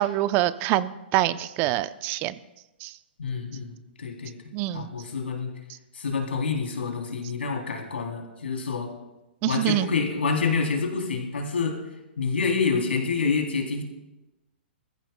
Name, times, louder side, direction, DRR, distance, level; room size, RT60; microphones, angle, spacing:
voice 1, 0.0-2.3 2.8-3.0 4.5-4.9 9.4-9.9, right 14 dB, 35° right, 14 dB, 0.6 m, -25 dB
voice 2, 3.2-4.3 4.7-5.5 5.9-8.9 9.4-11.8 12.2-13.8, left 5 dB, 85° left, 1 dB, 3.3 m, -27 dB
22.0 x 14.5 x 2.3 m, 0.99 s
hypercardioid pair, 130°, 6 cm